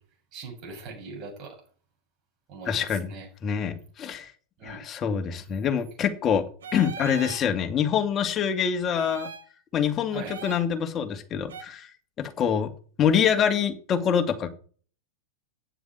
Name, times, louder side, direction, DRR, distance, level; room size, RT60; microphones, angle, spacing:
voice 1, 0.3-1.6 2.5-3.3 4.6-4.9 10.1-10.4, right 4 dB, 40° right, 0 dB, 7.7 m, -41 dB
voice 2, 2.7-3.1 3.4-4.3 4.6-6.4 6.7-9.3 9.7-11.9 12.2-12.7 13.0-14.5, left 8 dB, 30° left, 7 dB, 2.3 m, -25 dB
sound 1, 6.6-7.4 8.9-9.5 10.2-10.7 11.5-11.6, right 5 dB, 80° right, 1.6 m, -39 dB
9.8 x 7.7 x 8.1 m, 0.42 s
hypercardioid pair, 100°, 0 cm